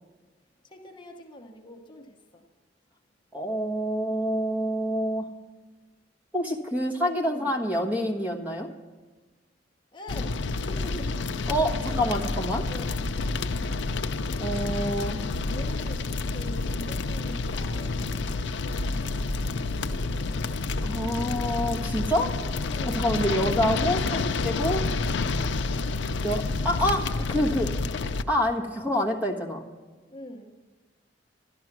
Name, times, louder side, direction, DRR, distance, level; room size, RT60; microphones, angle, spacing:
voice 1, 0.6-2.4 7.3-7.5 9.9-11.1 11.9-12.3 12.7-13.0 15.5-18.4 19.4-19.8 22.7-23.1 30.1-30.5, left 1 dB, 25° left, 2 dB, 0.9 m, -43 dB
voice 2, 3.3-5.3 6.3-8.7 11.5-12.7 14.4-15.2 20.8-22.3 22.8-24.9 26.2-27.7 28.3-29.6, equal, 10° right, 0 dB, 1.3 m, -27 dB
sound 1, 10.1-28.2, left 3 dB, 75° left, 0.5 m, -29 dB
12.5 x 12.0 x 6.0 m, 1.3 s
head